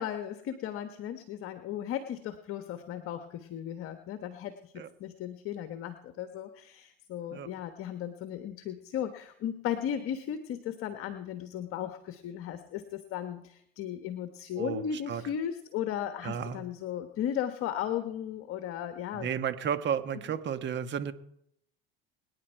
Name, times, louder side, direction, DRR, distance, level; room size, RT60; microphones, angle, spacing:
voice 1, 0.0-19.3, left 10 dB, 45° left, 9 dB, 1.4 m, -36 dB
voice 2, 14.6-15.2 16.2-16.7 19.1-21.1, right 8 dB, 40° right, 10 dB, 1.5 m, -33 dB
24.5 x 10.0 x 4.6 m, 0.73 s
hypercardioid pair, 80°, 29 cm